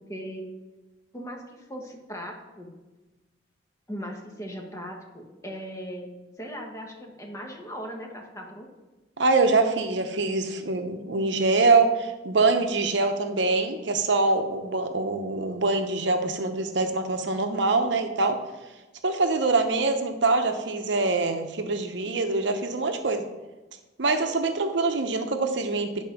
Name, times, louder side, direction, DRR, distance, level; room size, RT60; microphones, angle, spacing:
voice 1, 0.1-0.5 1.1-2.7 3.9-8.7, equal, 15° left, 1 dB, 1.2 m, -38 dB
voice 2, 9.2-18.4 19.0-23.2 24.0-26.0, right 3 dB, 65° right, 6 dB, 0.8 m, -24 dB
9.5 x 4.5 x 5.8 m, 1.1 s
head